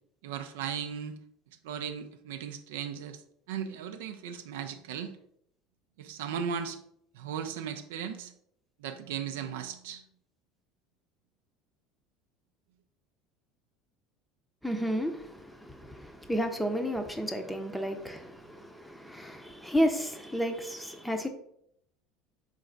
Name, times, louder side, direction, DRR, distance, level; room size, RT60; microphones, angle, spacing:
voice 1, 0.2-1.2 1.6-3.2 3.5-5.2 6.0-6.8 7.1-8.3 8.8-10.0, right 7 dB, 70° right, 0.4 m, -37 dB
voice 2, 14.6-21.3, equal, 5° left, 0.7 m, -32 dB
3.9 x 3.3 x 3.8 m
hypercardioid pair, 70°, 0 cm